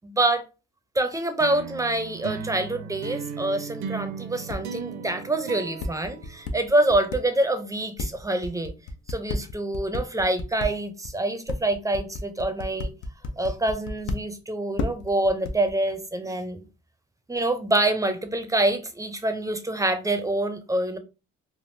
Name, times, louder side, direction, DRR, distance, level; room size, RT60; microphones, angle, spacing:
voice 1, 0.0-0.4 1.0-8.7 9.1-12.9 13.4-16.6 17.3-21.0, right 1 dB, 10° right, 0.4 m, -26 dB
sound 1, 1.4-7.0, right 7 dB, 65° right, 0.6 m, -37 dB
sound 2, 4.5-4.6 5.8-7.2 8.0-10.7 11.0-11.1 11.5-14.1 14.8-15.7, left 2 dB, 85° left, 0.6 m, -30 dB
3.5 x 2.3 x 2.6 m
cardioid pair, 90°, 30 cm